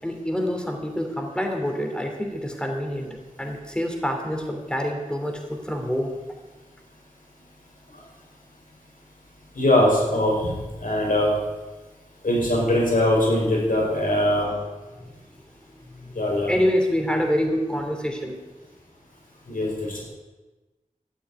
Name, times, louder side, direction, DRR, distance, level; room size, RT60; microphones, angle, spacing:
voice 1, 0.0-6.2 15.0-15.2 15.7-18.4, equal, 5° left, 3 dB, 3.1 m, -27 dB
voice 2, 9.6-11.3 12.2-14.5 16.1-16.5 19.5-19.7, left 1 dB, 80° left, -3 dB, 5.3 m, -21 dB
13.5 x 6.9 x 9.9 m, 1.2 s
wide cardioid pair, 45°, 14 cm